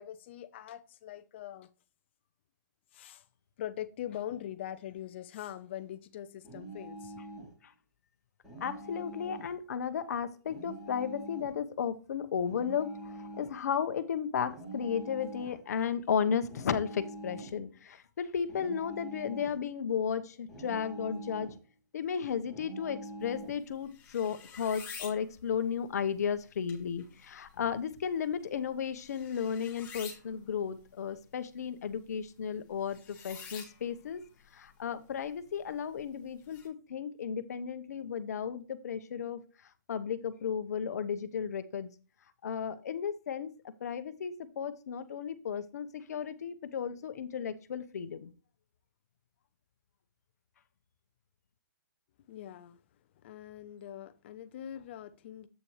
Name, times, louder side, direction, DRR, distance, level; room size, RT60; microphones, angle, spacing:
voice 1, 0.0-1.7 2.9-3.3 3.6-7.1 52.3-52.8 53.2-55.5, left 11 dB, 35° left, 0.6 m, -42 dB
sound 1, 6.4-7.6 8.4-9.6 10.5-11.6 12.5-13.6 14.5-15.6 16.5-17.6 18.5-19.6 20.5-21.6 22.5-23.6, right 1 dB, ahead, 2.8 m, -45 dB
voice 2, 8.6-21.5 21.9-34.2 34.5-39.4 39.9-41.9 42.4-43.5 43.8-48.3, left 7 dB, 55° left, 1.0 m, -34 dB
sound 2, 23.2-36.7, left 6 dB, 15° left, 1.9 m, -51 dB
8.4 x 6.8 x 3.2 m
hypercardioid pair, 160°, 10 cm